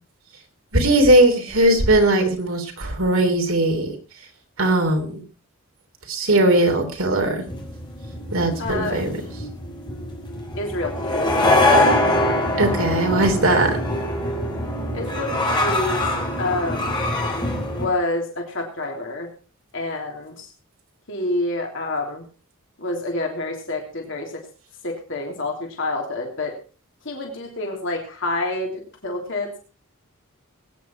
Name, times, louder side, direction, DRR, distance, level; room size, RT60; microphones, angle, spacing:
voice 1, 0.7-3.9 4.6-5.1 6.1-7.4 8.3-9.1 12.6-13.8, right 1 dB, 70° right, 4 dB, 3.5 m, -19 dB
sound 1, 7.5-17.9, left 1 dB, 20° left, 3.8 m, -23 dB
voice 2, 8.6-9.0 10.6-11.4 14.9-16.0 16.4-17.0 17.7-19.3 19.7-20.5 21.1-22.2 22.8-24.4 24.8-26.5 27.0-29.6, left 2 dB, 60° left, 1 dB, 3.2 m, -28 dB
20.5 x 9.8 x 4.5 m, 0.36 s
head